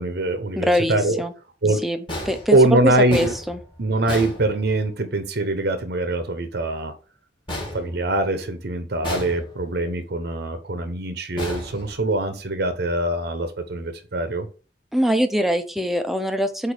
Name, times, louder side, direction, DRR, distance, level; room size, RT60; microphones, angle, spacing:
voice 1, 0.0-1.2 1.6-1.8 2.5-3.3 3.8-6.9 7.7-14.5, right 2 dB, 60° right, 0.9 m, -23 dB
voice 2, 0.6-1.3 1.8-2.0 2.3-3.6 14.9-16.7, equal, ahead, 0.6 m, -23 dB
sound 1, 2.1-5.1 7.5-8.6 9.0-9.9 11.4-12.5, left 1 dB, 30° left, 2.4 m, -34 dB
8.2 x 2.7 x 4.9 m
head